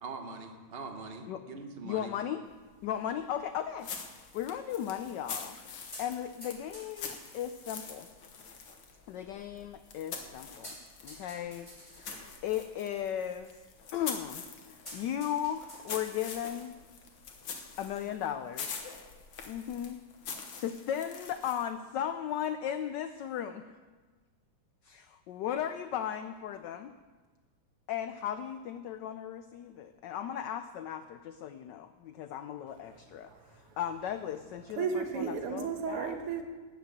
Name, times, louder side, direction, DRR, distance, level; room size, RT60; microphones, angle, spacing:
voice 1, 0.0-2.1, right 3 dB, 40° right, 0.9 m, -42 dB
voice 2, 1.8-2.4 2.8-5.6 6.0-8.1 9.1-10.8 11.0-11.7 12.0-13.5 13.9-16.8 17.8-18.8 19.4-20.0 20.6-23.8 24.8-26.9 27.9-35.0 35.5-36.1, left 10 dB, 85° left, 0.9 m, -36 dB
sound 1, 2.4-19.9, left 1 dB, 15° left, 2.8 m, -55 dB
sound 2, 3.8-11.2 11.5-21.8, left 5 dB, 60° left, 1.8 m, -45 dB
voice 3, 32.7-33.8 34.6-36.4, right 6 dB, 85° right, 2.1 m, -35 dB
12.5 x 5.9 x 8.5 m
omnidirectional pair, 2.4 m